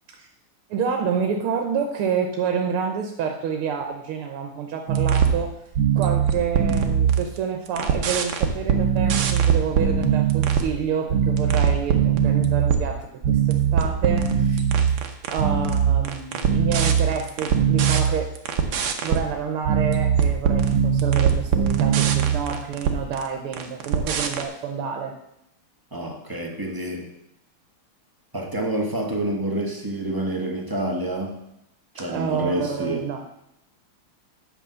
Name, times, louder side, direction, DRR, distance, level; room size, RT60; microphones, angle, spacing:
voice 1, 0.7-5.5 6.0-15.0 15.3-18.3 19.0-25.1 32.1-33.2, right 7 dB, 90° right, 3 dB, 1.8 m, -28 dB
sound 1, 4.9-5.4 5.8-7.4 7.7-10.7 11.1-12.9 13.2-19.2 19.7-23.3 23.5-24.4, right 8 dB, 65° right, 1.6 m, -21 dB
voice 2, 25.9-27.1 28.3-31.4 31.9-33.1, right 1 dB, 15° right, 1 dB, 0.9 m, -28 dB
8.8 x 5.4 x 7.0 m, 0.80 s
omnidirectional pair, 2.4 m